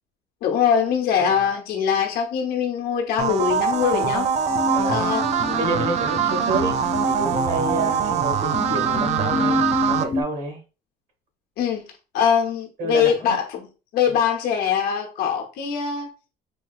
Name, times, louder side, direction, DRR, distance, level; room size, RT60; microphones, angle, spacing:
voice 1, 0.4-4.3 4.8-5.2 11.6-11.8 12.1-13.7 13.9-16.1, left 8 dB, 65° left, 0.9 m, -22 dB
sound 1, 3.2-10.0, right 8 dB, 40° right, 0.4 m, -23 dB
sound 2, 4.5-10.2, left 3 dB, 50° left, 1.2 m, -28 dB
voice 2, 4.7-5.0 5.4-10.6 12.8-13.3, right 2 dB, 65° right, 1.8 m, -29 dB
4.5 x 2.8 x 2.4 m
cardioid pair, 155°, 17 cm